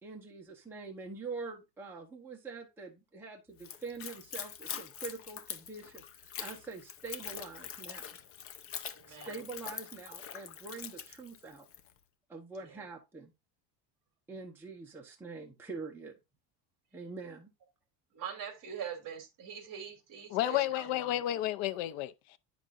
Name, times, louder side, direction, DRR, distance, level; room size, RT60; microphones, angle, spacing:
voice 1, 0.0-8.2 9.1-11.7 12.3-13.3 14.3-16.2 16.9-17.5, right 4 dB, 5° right, 1.0 m, -45 dB
Splash splatter / Trickle dribble, 3.6-11.9, left 8 dB, 30° left, 0.6 m, -44 dB
voice 2, 8.9-9.4 12.6-12.8 18.1-21.2, right 8 dB, 40° right, 2.8 m, -43 dB
voice 3, 20.3-22.4, left 13 dB, 75° left, 0.8 m, -32 dB
9.7 x 6.0 x 2.5 m
cardioid pair, 160°, 49 cm